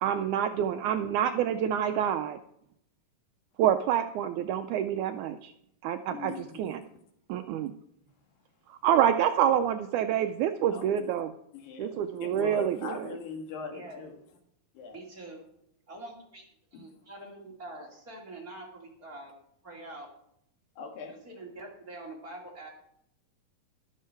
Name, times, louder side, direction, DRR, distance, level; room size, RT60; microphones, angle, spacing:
voice 1, 0.0-2.4 3.6-5.5 5.8-6.3 6.6-6.8 7.3-7.7 8.7-11.3 11.8-13.1, right 10 dB, 80° right, 8 dB, 1.8 m, -27 dB
voice 2, 6.1-6.8 10.7-10.9 11.5-14.2 14.8-15.0 16.7-16.9 20.8-21.2, left 5 dB, 85° left, 4 dB, 3.5 m, -41 dB
voice 3, 13.7-14.0 14.9-15.5 15.9-16.5 16.7-19.3 19.6-20.1 21.2-22.7, right 2 dB, 30° right, -2 dB, 2.4 m, -45 dB
12.0 x 12.0 x 4.5 m, 0.74 s
omnidirectional pair, 3.9 m